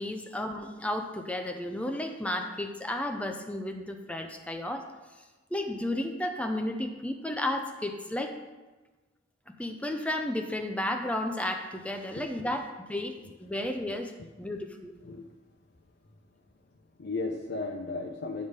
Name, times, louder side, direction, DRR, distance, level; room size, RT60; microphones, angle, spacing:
voice 1, 0.0-4.8 5.5-8.3 9.6-14.1 14.4-14.9, left 1 dB, 5° left, 4 dB, 0.5 m, -33 dB
voice 2, 12.2-12.5 14.2-14.3 15.0-15.3 17.0-18.5, left 3 dB, 60° left, 1 dB, 0.6 m, -35 dB
9.6 x 3.6 x 6.5 m, 1.2 s
head